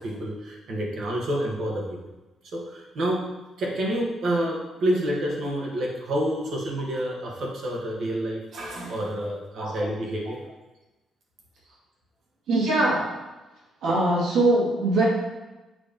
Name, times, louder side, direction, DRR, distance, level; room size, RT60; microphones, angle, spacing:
voice 1, 0.0-2.0 2.5-3.3 3.6-10.4, right 1 dB, 50° right, -2 dB, 1.4 m, -28 dB
voice 2, 12.5-13.0 13.8-15.1, right 2 dB, 80° right, -6 dB, 2.0 m, -22 dB
7.7 x 3.2 x 5.1 m, 1.1 s
cardioid pair, 170°, 0 cm